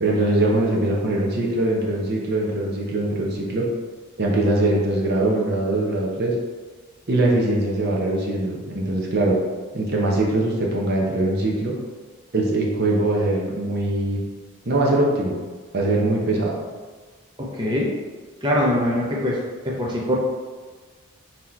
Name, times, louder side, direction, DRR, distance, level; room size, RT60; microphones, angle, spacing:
voice 1, 0.0-3.7 4.2-6.3 7.1-9.4 9.7-11.7 12.3-14.2 14.7-15.4 15.7-16.6, right 2 dB, 50° right, -2 dB, 0.8 m, -22 dB
voice 2, 17.4-17.9 18.4-19.4 19.6-20.2, left 1 dB, 20° right, -4 dB, 0.6 m, -22 dB
3.9 x 2.9 x 4.4 m, 1.4 s
head